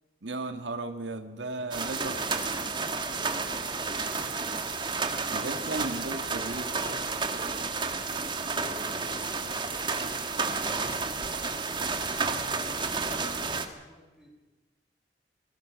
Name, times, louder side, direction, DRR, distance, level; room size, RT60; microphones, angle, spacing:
voice 1, 0.2-2.4 5.3-6.7, right 2 dB, 85° right, 7 dB, 1.7 m, -35 dB
voice 2, 1.6-4.2 5.4-7.6 8.1-14.3, equal, ahead, -2 dB, 6.9 m, -52 dB
sound 1, 1.7-13.7, right 4 dB, 25° right, 1.8 m, -31 dB
28.0 x 21.5 x 6.3 m, 1.2 s
head